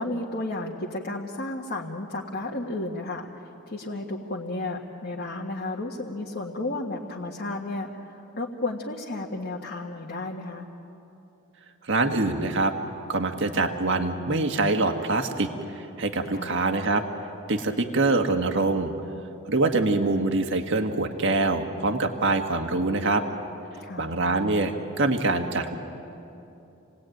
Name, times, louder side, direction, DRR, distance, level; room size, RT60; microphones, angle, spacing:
voice 1, 0.0-10.7 16.3-16.5 23.8-24.1, left 2 dB, 45° left, -2 dB, 1.6 m, -33 dB
voice 2, 11.8-12.7 13.1-17.0 17.5-18.9 19.5-23.2 24.0-25.8, right 2 dB, 60° right, 5 dB, 1.6 m, -24 dB
29.0 x 19.0 x 9.2 m, 2.9 s
head